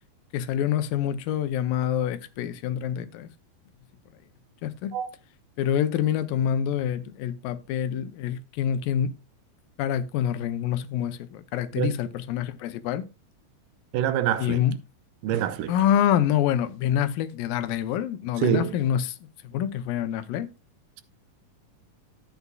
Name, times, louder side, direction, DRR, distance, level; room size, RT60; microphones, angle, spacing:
voice 1, 0.3-3.3 4.6-4.9 5.6-9.1 9.8-13.1 14.4-14.8 15.7-19.2 19.4-20.5, left 10 dB, 80° left, 2.4 m, -26 dB
voice 2, 13.9-14.6 15.2-15.8 18.4-18.8, right 11 dB, 80° right, 2.3 m, -26 dB
12.0 x 8.2 x 2.3 m
omnidirectional pair, 4.0 m